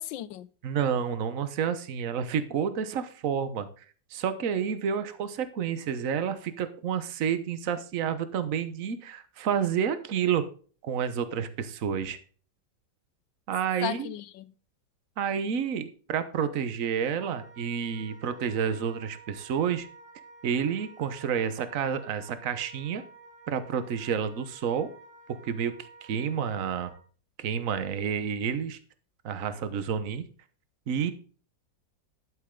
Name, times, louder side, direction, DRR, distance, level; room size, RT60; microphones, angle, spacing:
voice 1, 0.0-0.5 13.8-14.5, left 13 dB, 90° left, 1.4 m, -35 dB
voice 2, 0.6-3.8 4.1-10.4 10.8-12.2 13.5-14.1 15.2-19.9 20.4-23.0 23.5-24.9 25.3-26.9 27.4-28.8 29.2-30.3 30.9-31.1, right 7 dB, 50° right, 1.3 m, -29 dB
Wind instrument woodwind instrument, 17.2-27.0, right 3 dB, 15° right, 1.9 m, -51 dB
11.5 x 7.8 x 3.8 m
omnidirectional pair, 2.0 m